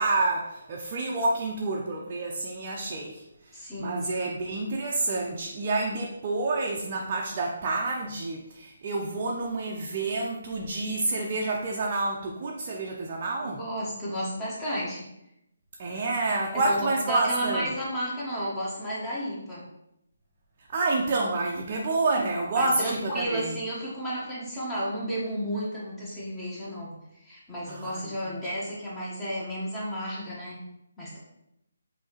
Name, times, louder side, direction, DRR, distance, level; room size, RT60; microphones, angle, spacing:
voice 1, 0.0-13.6 15.8-17.7 20.7-23.6 27.7-28.4, right 2 dB, 35° right, -1 dB, 0.5 m, -29 dB
voice 2, 3.5-4.1 13.4-15.1 16.7-19.6 22.5-26.9 27.2-30.6 31.0-31.2, equal, 10° left, -8 dB, 1.3 m, -32 dB
5.3 x 2.8 x 3.0 m, 0.85 s
figure-of-eight pair, 150°, 0 cm